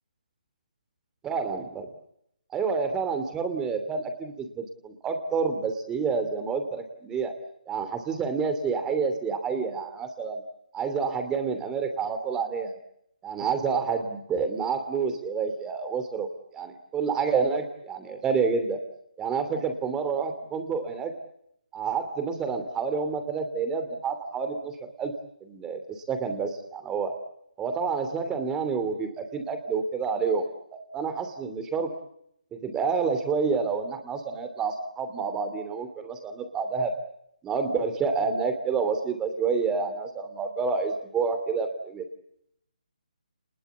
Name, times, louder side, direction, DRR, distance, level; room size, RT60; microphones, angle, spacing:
voice 1, 1.2-1.9 2.5-7.3 7.7-10.4 10.7-12.7 13.2-18.8 19.2-21.1 21.7-25.1 25.4-27.1 27.6-30.5 30.7-31.9 32.5-36.9 37.4-42.1, right 5 dB, 10° right, 8 dB, 2.9 m, -28 dB
30.0 x 21.0 x 8.2 m, 0.75 s
figure-of-eight pair, 155°, 4 cm